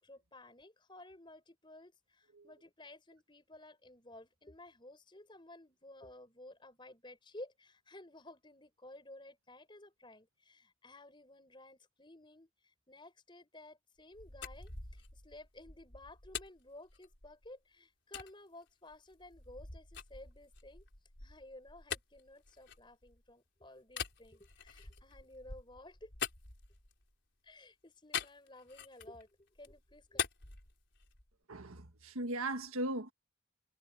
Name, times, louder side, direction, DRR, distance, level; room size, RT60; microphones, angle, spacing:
voice 1, 0.0-20.9 21.2-26.1 27.4-30.3, left 1 dB, 20° left, 5.6 m, -55 dB
sound 1, 14.0-17.5 18.1-18.3 18.9-23.3 23.9-27.1 28.1-29.2 29.6-31.3, left 7 dB, 55° left, 5.0 m, -44 dB
voice 2, 31.5-33.1, right 1 dB, 85° right, 1.7 m, -38 dB
head